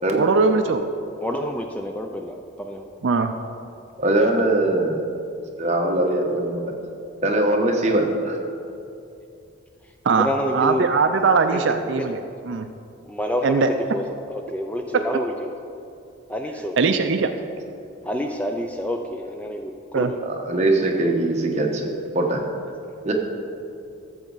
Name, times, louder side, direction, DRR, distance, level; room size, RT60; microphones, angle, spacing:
voice 1, 0.1-0.9 3.0-3.3 10.0-12.2 12.5-12.7 13.4-13.7 16.8-17.3 19.9-20.1, right 4 dB, 60° right, 8 dB, 0.4 m, -20 dB
voice 2, 1.2-2.8 10.1-10.9 11.5-11.6 12.0-12.1 13.1-13.6 13.9-15.5 16.3-16.8 18.0-20.2, equal, 5° left, 4 dB, 0.4 m, -28 dB
voice 3, 4.0-5.0 5.6-6.6 7.2-8.4 20.2-21.9 22.1-22.4 23.0-23.1, right 1 dB, 35° right, 1 dB, 1.0 m, -21 dB
13.5 x 7.1 x 4.0 m, 2.6 s
head